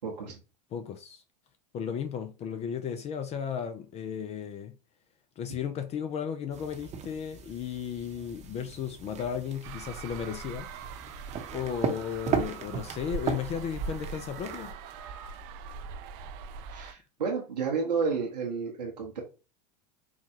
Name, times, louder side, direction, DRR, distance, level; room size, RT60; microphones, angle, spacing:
voice 1, 0.0-0.4 16.7-19.2, right 5 dB, 85° right, 1.0 m, -31 dB
voice 2, 0.7-1.2 1.7-4.7 5.4-11.0 11.5-14.7, left 8 dB, 30° left, 0.4 m, -35 dB
sound 1, 6.5-14.7, right 7 dB, 35° right, 0.8 m, -37 dB
sound 2, 9.6-16.9, right 5 dB, 50° right, 0.5 m, -41 dB
4.6 x 2.2 x 2.8 m
hypercardioid pair, 95°, 21 cm